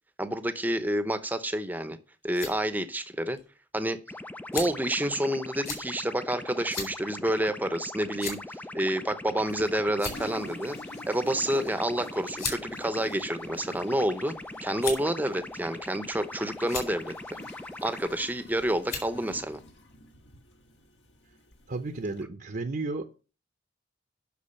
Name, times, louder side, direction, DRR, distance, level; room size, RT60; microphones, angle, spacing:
voice 1, 0.2-2.0 2.2-3.4 3.7-4.0 4.5-8.4 8.7-10.8 11.1-14.4 14.6-17.4 17.8-19.6, right 1 dB, 10° right, 11 dB, 0.8 m, -29 dB
sound 1, 2.0-2.6 3.4-3.5 4.5-4.9 5.6-5.8 6.7-6.9 7.3-7.4 8.2-8.5 9.4-9.6 9.9-10.4 11.5-11.7 12.4-12.6 13.4-14.0 14.8-15.2 15.9-16.3 16.6-16.9 18.1-18.4 18.9-19.1, left 5 dB, 50° left, 3.9 m, -35 dB
sound 2, 4.1-18.1, left 1 dB, 10° left, 0.4 m, -41 dB
Toilet flush, 9.4-22.2, left 2 dB, 65° left, 1.7 m, -48 dB
voice 2, 21.7-23.1, right 3 dB, 50° right, 7 dB, 0.8 m, -33 dB
8.3 x 6.3 x 6.9 m, 0.35 s
head